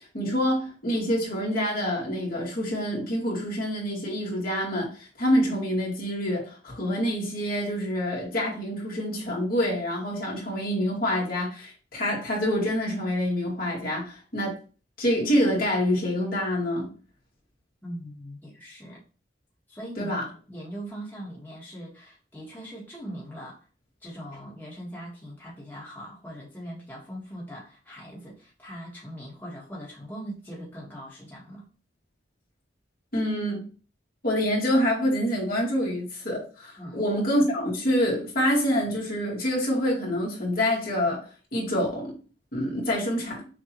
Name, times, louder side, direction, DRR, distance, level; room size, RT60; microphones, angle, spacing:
voice 1, 0.1-14.6 15.0-16.9 20.0-20.2 33.1-33.7 34.2-41.2 41.5-42.1 42.5-43.4, equal, 55° left, 2.0 m, -26 dB
voice 2, 17.8-19.0 19.7-23.6 24.0-31.6 36.8-37.0, equal, 10° left, 1.5 m, -41 dB
6.4 x 2.7 x 3.0 m
head